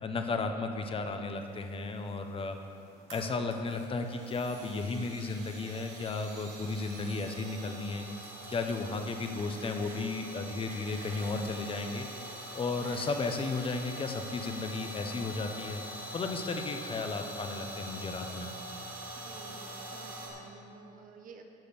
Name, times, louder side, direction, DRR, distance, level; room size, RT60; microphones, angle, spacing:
voice 1, 0.0-2.6 3.1-12.1 12.5-15.8 16.1-18.5, left 3 dB, 35° left, 6 dB, 0.9 m, -34 dB
sound 1, 1.5-20.3, right 1 dB, 85° right, 2.5 m, -44 dB
voice 2, 8.8-9.1 19.2-21.4, right 4 dB, 55° right, 4 dB, 1.2 m, -51 dB
12.0 x 5.1 x 6.9 m, 2.6 s
cardioid pair, 110°, 17 cm